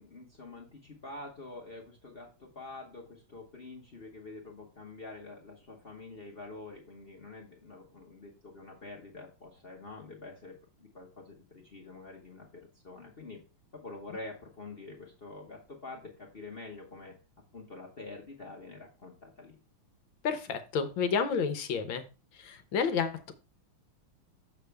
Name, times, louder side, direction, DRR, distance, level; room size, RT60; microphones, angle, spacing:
voice 1, 0.0-13.4 13.7-17.1 17.5-19.6, left 3 dB, 35° left, -2 dB, 1.0 m, -46 dB
voice 2, 20.2-22.0 22.3-23.3, left 6 dB, 70° left, 9 dB, 1.5 m, -30 dB
6.8 x 6.6 x 3.4 m, 0.32 s
omnidirectional pair, 2.3 m